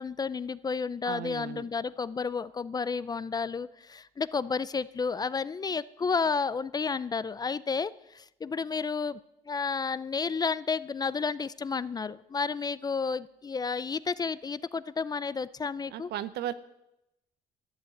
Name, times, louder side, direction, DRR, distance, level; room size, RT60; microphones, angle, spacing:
voice 1, 0.0-9.2 9.5-16.1, left 5 dB, 25° left, 18 dB, 0.4 m, -31 dB
voice 2, 1.0-1.7 15.9-16.5, right 12 dB, 75° right, 14 dB, 0.9 m, -36 dB
12.0 x 11.0 x 7.8 m, 0.86 s
cardioid pair, 110°, 17 cm